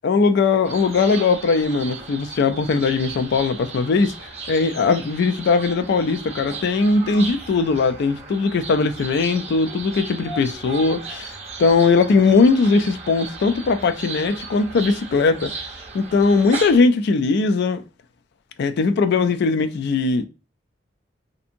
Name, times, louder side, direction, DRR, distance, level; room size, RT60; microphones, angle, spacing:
voice 1, 0.0-15.5 15.9-17.8 18.6-20.3, left 4 dB, 60° left, 0.3 m, -19 dB
sound 1, 0.6-16.8, right 4 dB, 35° right, 0.7 m, -36 dB
2.7 x 2.5 x 2.6 m
head